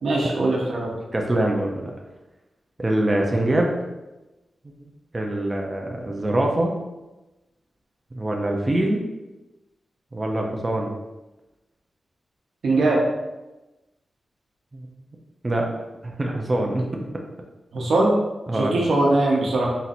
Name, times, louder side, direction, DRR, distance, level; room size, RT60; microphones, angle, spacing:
voice 1, 0.0-0.9 12.6-13.0 17.7-18.2 18.5-19.7, right 2 dB, 70° right, -3 dB, 0.8 m, -21 dB
voice 2, 1.1-1.9 2.8-3.7 4.6-4.9 5.1-6.8 8.1-9.0 10.1-10.9 14.7-14.9 15.4-15.7 16.0-17.2 18.5-18.8, right 1 dB, 20° right, 0 dB, 0.4 m, -24 dB
4.1 x 2.5 x 4.1 m, 1.0 s
wide cardioid pair, 170°, 0 cm